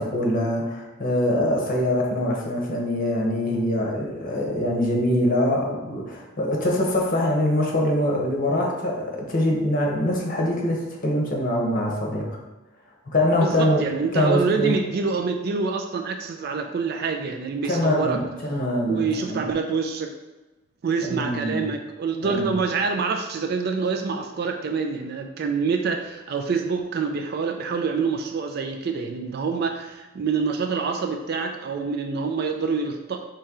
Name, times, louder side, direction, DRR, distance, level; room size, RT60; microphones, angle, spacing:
voice 1, 0.0-12.4 13.1-14.8 17.6-19.4 21.0-21.7 22.2-22.5, left 1 dB, 45° left, -1 dB, 0.9 m, -24 dB
voice 2, 13.4-18.2 18.8-20.1 20.8-33.2, right 5 dB, 55° right, 5 dB, 0.4 m, -26 dB
4.4 x 3.1 x 3.6 m, 1.1 s
head